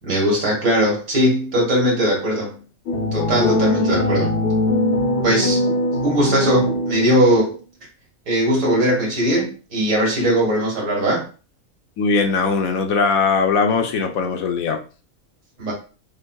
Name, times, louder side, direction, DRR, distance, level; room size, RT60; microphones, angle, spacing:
voice 1, 0.0-2.6 3.1-4.3 5.2-5.6 6.0-7.6 8.3-11.3 15.6-15.7, equal, 80° right, -3 dB, 2.0 m, -19 dB
sound 1, 2.9-7.4, left 1 dB, 55° left, 0.7 m, -21 dB
voice 2, 12.0-14.8, left 5 dB, 75° left, 5 dB, 1.0 m, -20 dB
5.2 x 2.0 x 2.2 m, 0.35 s
omnidirectional pair, 1.5 m